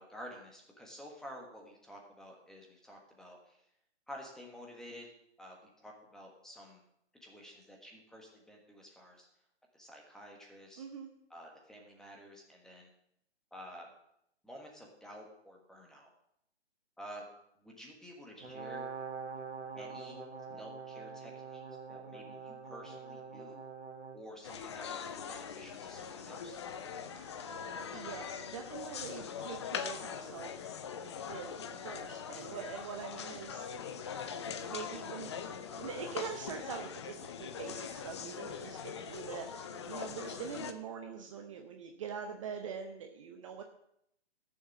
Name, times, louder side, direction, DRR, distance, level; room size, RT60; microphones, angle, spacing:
voice 1, 0.0-3.6 4.1-5.1 5.4-6.8 7.2-9.3 9.7-10.8 11.3-12.9 13.5-13.9 14.4-16.1 17.0-17.2 17.6-18.9 19.7-21.6 21.9-23.6 24.1-26.6, equal, ahead, 0 dB, 1.4 m, -51 dB
voice 2, 10.8-11.1 27.1-27.5 27.9-30.7 31.3-34.0 34.7-43.6, right 7 dB, 30° right, 4 dB, 0.8 m, -44 dB
Brass instrument, 18.4-24.2, right 5 dB, 90° right, 2.0 m, -44 dB
sound 1, 24.4-40.7, left 7 dB, 25° left, 0.6 m, -42 dB
13.5 x 7.2 x 6.0 m, 0.75 s
figure-of-eight pair, 140°, 34 cm